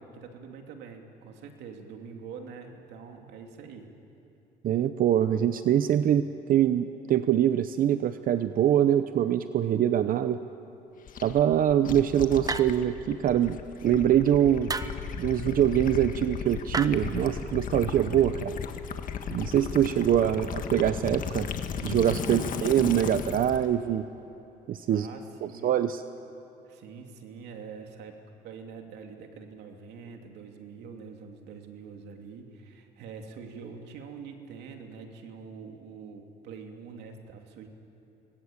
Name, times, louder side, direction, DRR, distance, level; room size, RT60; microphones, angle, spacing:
voice 1, 0.0-3.9 11.8-11.9 22.1-22.4 24.9-25.8 26.6-37.7, right 5 dB, 80° right, 3 dB, 2.9 m, -45 dB
voice 2, 4.6-10.4 11.2-13.6 13.8-14.7 15.2-18.5 19.3-21.5 21.8-24.0 24.7-25.1 25.4-26.0, right 10 dB, 55° right, 11 dB, 0.8 m, -24 dB
Gurgling / Liquid, 11.1-23.7, left 7 dB, 55° left, 1.7 m, -35 dB
sound 1, 12.5-13.0 14.7-15.1 16.7-16.9, right 4 dB, 20° right, 0.9 m, -32 dB
26.0 x 21.0 x 8.8 m, 2.8 s
cardioid pair, 110°, 17 cm